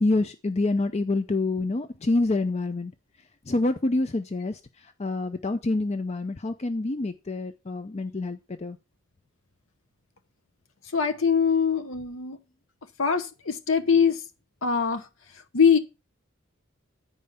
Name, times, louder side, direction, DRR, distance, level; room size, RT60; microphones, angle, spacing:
voice 1, 0.0-2.9 3.5-8.8, left 2 dB, 30° left, 0.5 m, -27 dB
voice 2, 10.9-12.4 13.0-14.2 14.6-15.8, left 6 dB, 85° left, 0.9 m, -23 dB
9.5 x 5.2 x 5.5 m
head